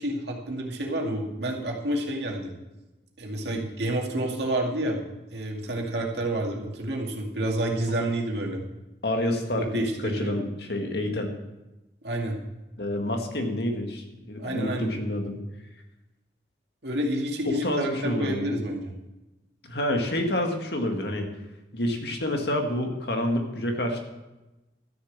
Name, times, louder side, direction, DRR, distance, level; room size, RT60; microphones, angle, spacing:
voice 1, 0.0-2.5 3.2-8.6 9.6-10.4 12.0-12.4 14.4-14.9 16.8-18.9, right 1 dB, 75° right, 0 dB, 2.2 m, -29 dB
voice 2, 9.0-11.3 12.8-15.4 17.4-18.5 19.6-21.3 21.7-24.0, left 1 dB, 70° left, 3 dB, 1.8 m, -28 dB
13.0 x 6.8 x 7.3 m, 1.0 s
head